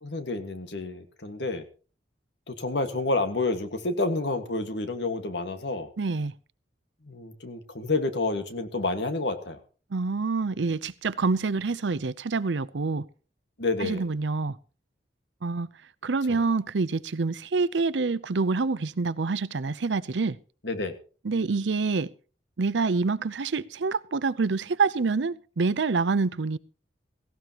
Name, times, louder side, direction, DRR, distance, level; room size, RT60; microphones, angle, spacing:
voice 1, 0.0-1.6 2.5-5.9 7.0-9.6 13.6-14.1 16.3-16.4 20.6-21.0, left 2 dB, 75° left, 1.8 m, -29 dB
voice 2, 6.0-6.3 9.9-13.0 13.8-14.6 15.4-15.7 16.0-20.4 21.2-22.1 22.6-26.6, right 4 dB, 80° right, 0.6 m, -26 dB
17.5 x 16.0 x 3.0 m
head